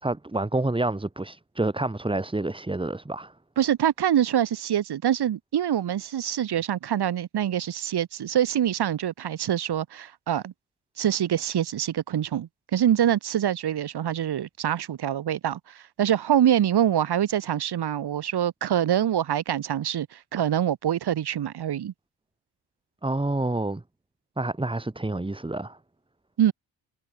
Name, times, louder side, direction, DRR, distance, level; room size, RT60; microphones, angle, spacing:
voice 1, 0.0-3.3 23.0-23.8 24.4-25.8, right 2 dB, 10° right, 1.7 m, -28 dB
voice 2, 3.6-10.5 11.0-21.9 26.4-26.5, right 10 dB, 60° right, 2.4 m, -25 dB
supercardioid pair, 55°, 44 cm